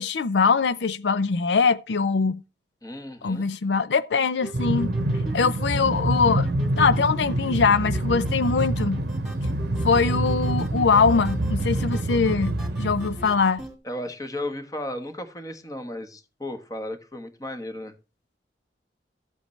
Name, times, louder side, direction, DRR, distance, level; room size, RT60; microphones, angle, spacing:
voice 1, 0.0-2.4 3.2-4.9 5.3-6.5 6.8-9.0 9.8-13.6, left 5 dB, 75° left, 0.5 m, -22 dB
voice 2, 2.8-3.5 13.8-17.9, left 1 dB, 20° left, 1.2 m, -34 dB
sound 1, 4.4-13.7, right 1 dB, ahead, 2.4 m, -41 dB
Train, 4.5-13.4, right 1 dB, 65° right, 0.8 m, -26 dB
14.0 x 8.1 x 3.2 m
head